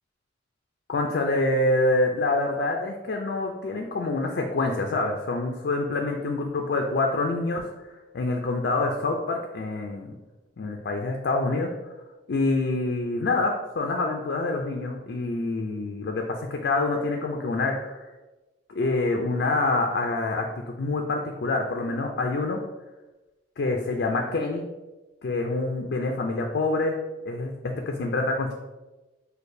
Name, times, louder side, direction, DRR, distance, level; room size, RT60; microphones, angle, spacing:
voice 1, 0.9-7.7 8.1-10.1 10.6-11.7 12.3-18.1 18.7-22.6 23.6-24.7 25.2-28.5, left 2 dB, 60° left, 2 dB, 0.4 m, -26 dB
6.3 x 2.3 x 2.6 m, 1.1 s
head